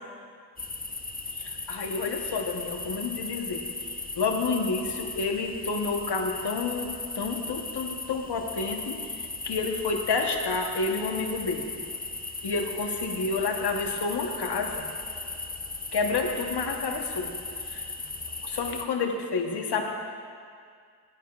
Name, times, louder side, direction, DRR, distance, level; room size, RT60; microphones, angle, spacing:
sound 1, 0.6-18.8, left 3 dB, 20° left, 0.8 m, -37 dB
voice 1, 1.4-3.6 4.2-11.8 12.4-14.9 15.9-17.3 17.7-17.8 18.4-19.9, left 4 dB, 70° left, 3 dB, 1.1 m, -29 dB
14.0 x 9.1 x 2.4 m, 2.2 s
cardioid pair, 45°, 42 cm